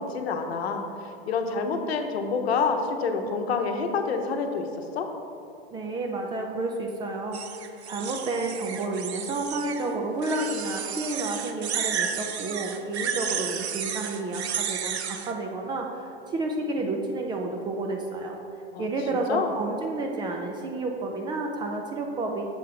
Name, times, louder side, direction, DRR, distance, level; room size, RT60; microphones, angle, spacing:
voice 1, 0.0-5.1 18.7-18.9 19.1-19.5, left 5 dB, 75° left, 5 dB, 0.9 m, -28 dB
voice 2, 5.7-18.4 18.8-22.4, right 2 dB, 15° right, 2 dB, 0.3 m, -30 dB
sound 1, 7.3-9.9 10.2-15.3, right 7 dB, 85° right, 0.6 m, -32 dB
6.7 x 3.6 x 5.8 m, 2.6 s
hypercardioid pair, 115°, 32 cm